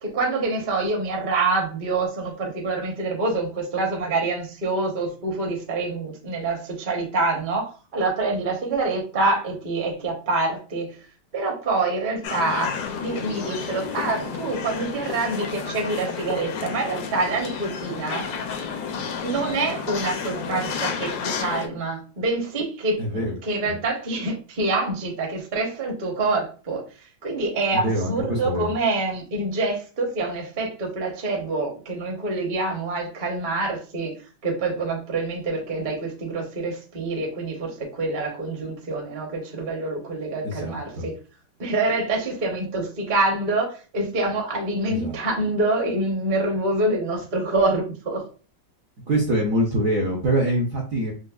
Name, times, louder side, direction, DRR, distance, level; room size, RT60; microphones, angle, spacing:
voice 1, 0.0-11.0 11.3-18.3 18.9-26.8 27.2-34.1 34.4-41.1 41.6-48.2, right 2 dB, 40° right, 0 dB, 0.6 m, -26 dB
sound 1, 12.2-21.7, left 6 dB, 75° left, 0.9 m, -31 dB
voice 2, 23.0-23.3 23.6-23.7 27.7-28.7 40.4-41.1 44.9-45.2 49.1-51.1, right 1 dB, 60° right, -2 dB, 0.9 m, -24 dB
5.0 x 2.0 x 2.3 m, 0.36 s
omnidirectional pair, 2.2 m